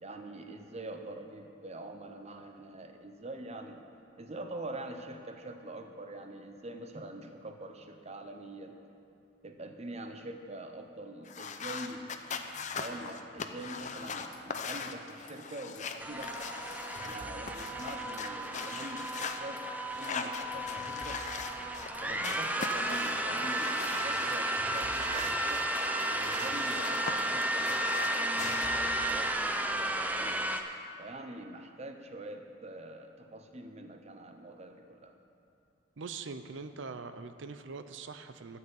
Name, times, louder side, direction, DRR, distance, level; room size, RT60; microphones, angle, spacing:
voice 1, 0.0-3.9 4.2-8.8 9.4-12.1 12.8-16.7 17.0-19.6 20.0-21.2 22.0-25.7 26.0-30.4 31.0-35.1, right 1 dB, 35° right, 6 dB, 0.8 m, -44 dB
sound 1, 11.3-17.2 17.5-19.4 19.9-21.9 22.2-24.4 24.7-27.1 27.4-28.7, left 5 dB, 40° left, 0.6 m, -41 dB
sound 2, 14.1-14.9 15.1-15.3 15.7-18.4 18.6-19.1 19.6-22.9 23.4-29.3, left 1 dB, 85° left, 1.6 m, -54 dB
sound 3, 16.0-30.6, right 1 dB, 10° right, 0.5 m, -33 dB
voice 2, 36.0-38.6, right 4 dB, 75° right, 10 dB, 0.6 m, -42 dB
13.0 x 5.7 x 8.3 m, 2.6 s
head